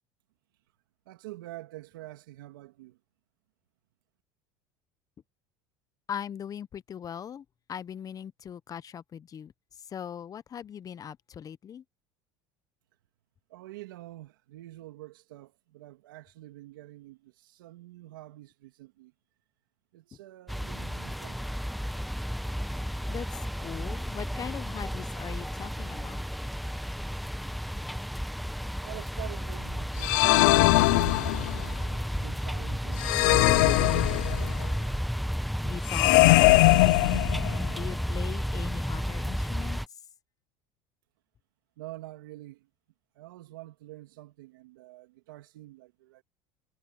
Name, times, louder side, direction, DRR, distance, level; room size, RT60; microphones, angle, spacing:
voice 1, 1.1-3.0 13.5-19.1 19.9-21.4 22.8-22.9 28.8-31.6 32.0-34.3 41.8-42.7 43.1-46.2, right 17 dB, 85° right, 2.7 m, -47 dB
voice 2, 6.1-9.5 9.9-11.8 23.1-23.3 23.6-26.2 35.6-37.3 37.7-39.8, left 8 dB, 35° left, 1.0 m, -40 dB
sound 1, 20.5-39.9, equal, ahead, 1.0 m, -32 dB
sound 2, 30.0-31.7 33.0-34.6 35.9-37.7, left 23 dB, 80° left, 0.5 m, -21 dB
supercardioid pair, 95°, 11 cm